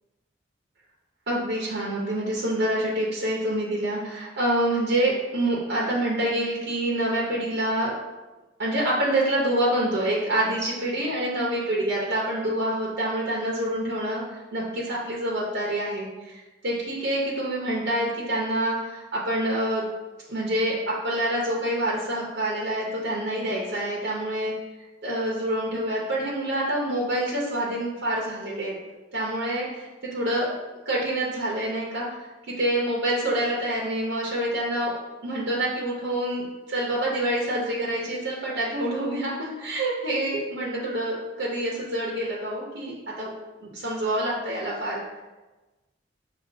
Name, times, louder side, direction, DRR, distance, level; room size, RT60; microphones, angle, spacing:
voice 1, 1.3-7.9 8.6-19.8 20.3-24.5 25.0-28.7 29.1-30.5 30.8-32.2 32.5-34.9 35.2-43.3 43.6-45.0, right 1 dB, 60° right, -5 dB, 0.7 m, -27 dB
6.3 x 2.4 x 2.6 m, 1.2 s
head